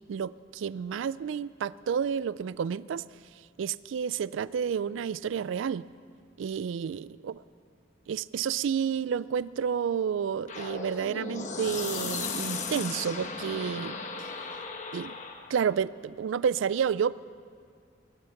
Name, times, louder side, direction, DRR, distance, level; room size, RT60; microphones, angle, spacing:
voice 1, 0.0-3.0 3.6-5.9 6.4-7.4 8.1-14.0 14.9-15.2 15.5-17.1, right 7 dB, 75° right, 19 dB, 0.3 m, -30 dB
sound 1, 10.5-15.5, left 4 dB, 35° left, 1.0 m, -36 dB
21.5 x 11.5 x 5.8 m, 2.2 s
head